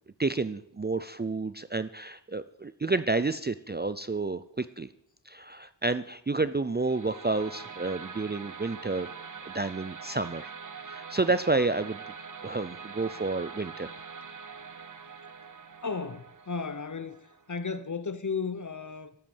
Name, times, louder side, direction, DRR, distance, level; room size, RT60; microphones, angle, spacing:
voice 1, 0.2-4.9 5.3-9.1 9.5-12.0 12.4-13.9, right 3 dB, 25° right, 0.5 m, -30 dB
sound 1, 6.8-17.8, right 5 dB, 45° right, 0.9 m, -44 dB
voice 2, 15.8-19.2, left 5 dB, 40° left, 0.9 m, -34 dB
13.0 x 8.1 x 7.2 m
wide cardioid pair, 55°, 44 cm